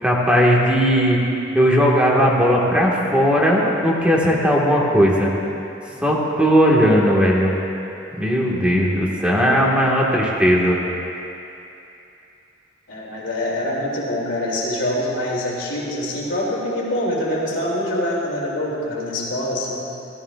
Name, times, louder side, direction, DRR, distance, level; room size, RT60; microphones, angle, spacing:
voice 1, 0.0-1.2 1.5-5.3 6.0-7.6 8.2-10.8, equal, 5° right, -4 dB, 1.7 m, -17 dB
voice 2, 12.9-19.9, left 1 dB, 80° left, -5 dB, 2.9 m, -25 dB
17.0 x 14.0 x 2.5 m, 2.8 s
head